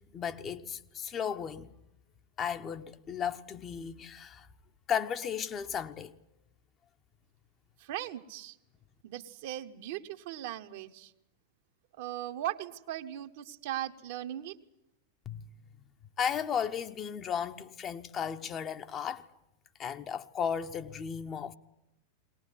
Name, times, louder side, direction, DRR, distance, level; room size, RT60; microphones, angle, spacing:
voice 1, 0.0-1.7 2.4-4.5 4.9-6.1 15.3-15.4 16.2-19.3 19.8-21.5, left 7 dB, 25° left, 1.0 m, -35 dB
voice 2, 7.8-8.6 9.0-11.1 12.0-14.6, right 13 dB, 50° right, 1.2 m, -38 dB
21.5 x 19.0 x 9.7 m
figure-of-eight pair, 90°, 0 cm